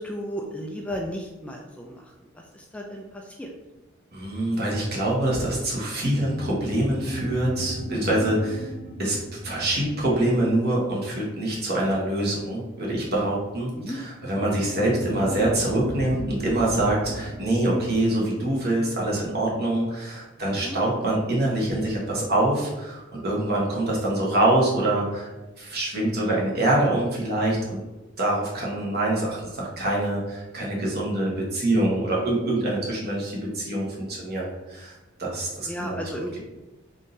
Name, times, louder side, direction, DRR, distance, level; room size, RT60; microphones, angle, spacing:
voice 1, 0.0-2.0 2.3-3.0 3.4-3.5 13.7-14.0 20.4-20.8 35.7-36.3, equal, 5° left, 0 dB, 0.3 m, -34 dB
voice 2, 4.1-8.7 9.0-25.3 25.6-27.8 28.2-34.9 35.2-36.4, right 1 dB, 50° right, -4 dB, 1.2 m, -25 dB
sound 1, 6.0-10.9 14.3-19.2, equal, 35° right, 0.7 m, -36 dB
3.7 x 2.6 x 3.8 m, 1.1 s
head